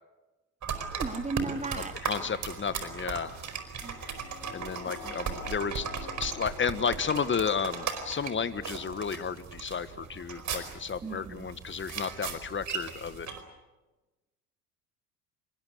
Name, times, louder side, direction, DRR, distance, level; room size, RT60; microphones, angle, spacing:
sound 1, 0.6-13.4, right 6 dB, 40° right, 4.9 m, -37 dB
voice 1, 0.9-2.0 3.8-4.0 5.0-5.1 11.0-11.5, right 4 dB, 15° right, 6 dB, 2.7 m, -35 dB
voice 2, 1.8-3.3 4.5-5.9 6.2-13.3, left 6 dB, 25° left, 13 dB, 1.6 m, -32 dB
sound 2, 3.3-8.1 8.4-8.5, left 9 dB, 75° left, 2.1 m, -49 dB
26.0 x 23.5 x 8.2 m, 1.1 s
hypercardioid pair, 70°, 45 cm